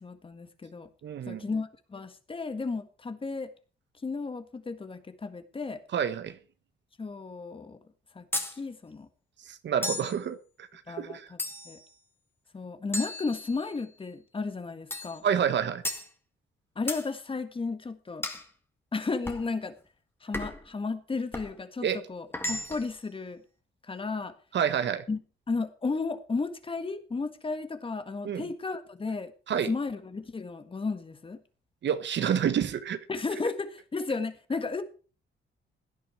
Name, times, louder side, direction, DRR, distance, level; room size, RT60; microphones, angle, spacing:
voice 1, 0.0-0.9 1.3-3.5 4.0-5.8 7.0-7.8 8.1-8.2 8.5-9.1 10.9-11.4 11.7-11.8 12.5-15.2 16.8-18.3 18.9-19.7 20.2-23.4 23.9-24.3 25.1-25.2 25.5-29.3 29.7-31.4 33.1-34.8, left 4 dB, 25° left, 1.7 m, -34 dB
voice 2, 1.0-1.4 5.9-6.4 9.5-11.3 15.2-15.8 21.8-22.0 24.5-25.0 28.2-28.4 29.5-29.7 31.8-33.0, right 8 dB, 60° right, 1.4 m, -28 dB
sound 1, 8.3-8.6 9.8-10.2 11.4-11.8 12.9-13.8 14.9-15.2 15.8-16.1 16.9-17.1 18.2-18.5 19.3-19.5 20.3-20.7 21.3-21.5 22.3-22.9, left 1 dB, 10° left, 1.9 m, -34 dB
17.0 x 10.0 x 4.6 m
cardioid pair, 120°, 21 cm